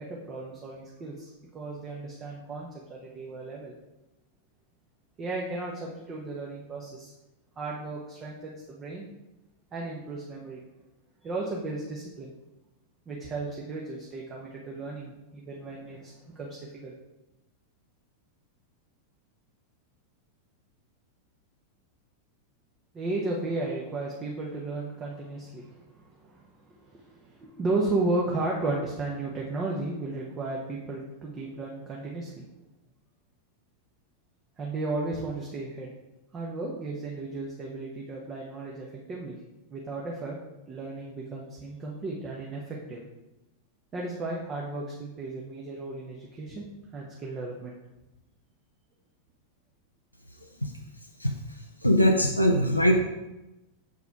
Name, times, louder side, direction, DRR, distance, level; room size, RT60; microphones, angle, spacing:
voice 1, 0.0-3.7 5.2-7.1 7.6-9.1 9.7-10.6 11.2-12.3 13.1-16.9 22.9-32.4 34.6-35.9 36.3-39.4 39.7-40.4 40.7-43.0 43.9-46.7 46.9-47.8, right 2 dB, 25° right, -2 dB, 1.1 m, -34 dB
voice 2, 51.8-53.0, equal, 90° left, 2 dB, 0.5 m, -21 dB
6.9 x 4.7 x 4.6 m, 1.0 s
figure-of-eight pair, 90°, 0 cm